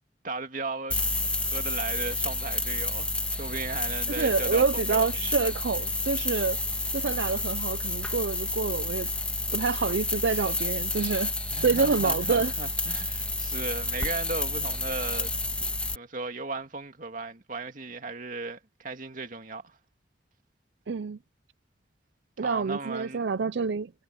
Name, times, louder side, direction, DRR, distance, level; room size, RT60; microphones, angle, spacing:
voice 1, 0.2-1.0 1.4-5.1 11.5-15.3 15.9-19.8 22.4-23.3, right 3 dB, 50° right, 2.2 m, -36 dB
sound 1, 0.9-16.0, left 2 dB, 5° left, 1.8 m, -30 dB
voice 2, 4.1-6.6 6.9-9.1 9.5-12.5 20.9-21.2 22.4-23.9, right 5 dB, 80° right, 0.5 m, -27 dB
head